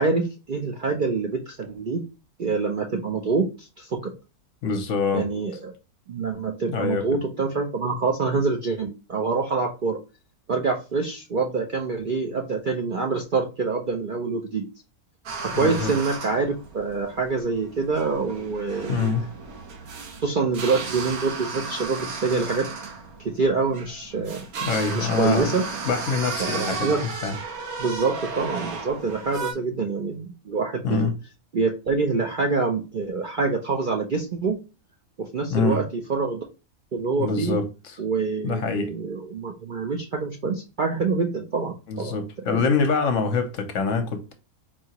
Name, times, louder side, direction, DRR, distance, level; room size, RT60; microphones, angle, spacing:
voice 1, 0.0-2.0 2.4-4.1 5.1-5.7 6.1-10.0 10.5-14.7 15.4-19.2 20.2-22.7 23.3-24.4 24.9-25.6 26.4-27.0 27.8-31.1 31.5-34.6 35.2-35.8 36.1-36.4 36.9-37.6 38.0-42.2 42.5-42.6, right 4 dB, 55° right, 0.6 m, -26 dB
voice 2, 4.6-5.3 6.7-7.2 15.5-15.9 18.9-19.2 24.6-26.9 27.2-27.4 30.8-31.1 35.5-35.8 37.2-38.0 38.4-38.9 41.9-44.3, left 5 dB, 65° left, 1.0 m, -25 dB
sound 1, 15.3-29.5, right 4 dB, 75° right, 1.3 m, -34 dB
4.6 x 2.8 x 2.8 m
omnidirectional pair, 1.6 m